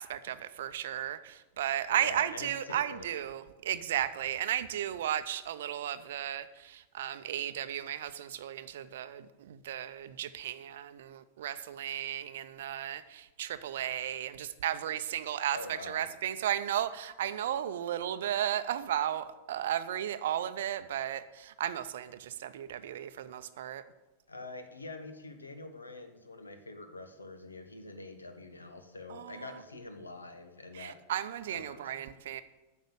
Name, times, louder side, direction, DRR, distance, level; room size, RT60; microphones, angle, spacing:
voice 1, 0.0-23.8 29.1-29.5 30.7-32.4, right 11 dB, 60° right, 12 dB, 0.6 m, -34 dB
voice 2, 1.9-3.2 15.5-16.1 24.3-31.0 31.5-32.0, left 2 dB, 80° left, 8 dB, 1.0 m, -45 dB
9.0 x 6.3 x 7.1 m, 1.1 s
figure-of-eight pair, 90°, 0 cm